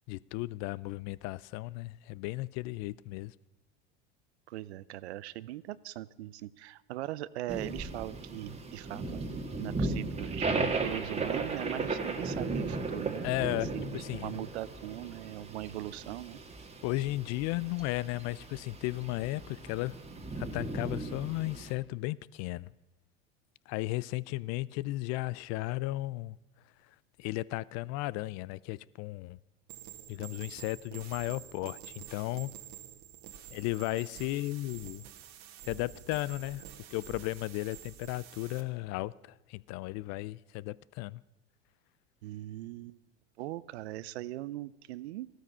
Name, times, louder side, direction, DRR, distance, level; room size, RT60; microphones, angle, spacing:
voice 1, 0.1-3.3 13.2-14.4 16.8-19.9 20.4-22.7 23.7-26.4 27.2-29.4 30.1-32.5 33.5-35.0 35.7-36.6 36.9-39.1 39.5-41.2, left 19 dB, 55° left, 0.5 m, -35 dB
voice 2, 4.5-9.2 9.6-13.3 13.7-16.4 42.2-43.0 43.4-45.3, right 15 dB, 85° right, 0.6 m, -40 dB
sound 1, 7.5-21.7, right 3 dB, 20° right, 1.6 m, -36 dB
sound 2, 29.7-38.6, right 10 dB, 55° right, 1.6 m, -49 dB
14.0 x 13.0 x 5.6 m
hypercardioid pair, 90°, 32 cm